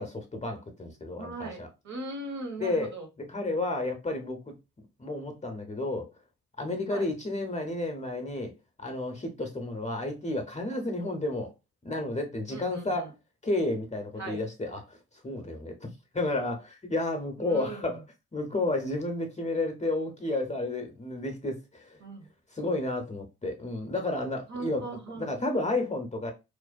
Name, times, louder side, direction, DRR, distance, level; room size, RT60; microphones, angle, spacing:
voice 1, 0.0-1.7 2.6-2.9 3.2-4.4 5.0-6.1 6.6-8.5 8.8-11.5 11.8-13.1 13.4-15.0 15.2-15.9 16.1-18.0 18.3-22.0 22.6-24.8 25.2-26.3, left 2 dB, 20° left, 0.7 m, -31 dB
voice 2, 1.1-3.1 6.9-7.1 12.5-13.1 14.2-14.4 17.4-18.0 22.0-22.3 24.5-25.3, right 3 dB, 50° right, 1.2 m, -39 dB
2.5 x 2.1 x 2.3 m
hypercardioid pair, 45°, 38 cm